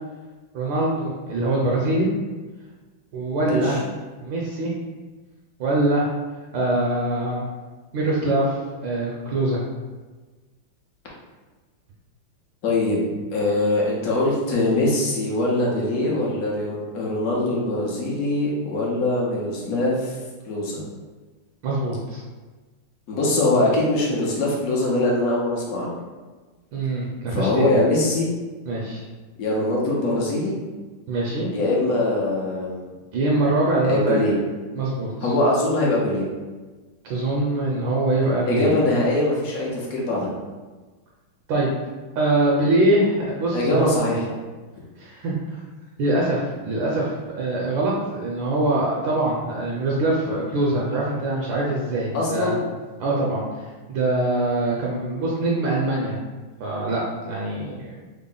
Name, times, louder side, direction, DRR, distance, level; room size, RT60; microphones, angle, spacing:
voice 1, 0.5-2.1 3.1-3.8 4.2-4.7 5.6-6.1 6.5-7.4 7.9-9.6 21.6-22.2 26.7-27.8 28.7-29.0 31.1-31.5 33.1-34.2 34.8-35.1 37.0-38.7 41.5-41.7 42.2-43.9 45.0-45.3 46.0-52.5 53.0-53.4 53.9-56.2 56.6-58.0, right 2 dB, 75° right, -3 dB, 1.3 m, -23 dB
voice 2, 3.4-3.8 12.6-20.2 20.4-20.8 23.1-25.9 27.3-28.3 29.4-30.5 31.5-32.9 33.8-34.4 35.2-36.3 38.5-40.3 43.5-44.2 52.1-52.6, left 2 dB, 65° left, -4 dB, 0.8 m, -22 dB
3.6 x 2.0 x 3.7 m, 1.3 s
omnidirectional pair, 2.3 m